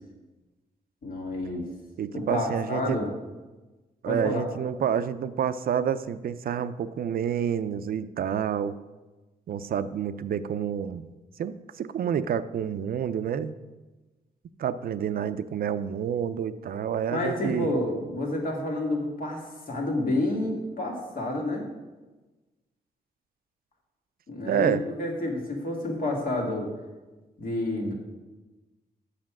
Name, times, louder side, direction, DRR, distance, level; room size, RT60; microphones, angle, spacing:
voice 1, 1.0-1.7 2.1-3.1 4.1-4.4 17.1-21.6 24.3-26.7 27.4-27.9, left 1 dB, 60° left, 0 dB, 2.1 m, -29 dB
voice 2, 2.0-3.0 4.0-8.8 9.5-11.1 11.4-13.6 14.6-17.7 24.5-24.8, right 8 dB, 65° right, 13 dB, 0.4 m, -28 dB
7.5 x 6.5 x 6.1 m, 1.2 s
cardioid pair, 100°, 16 cm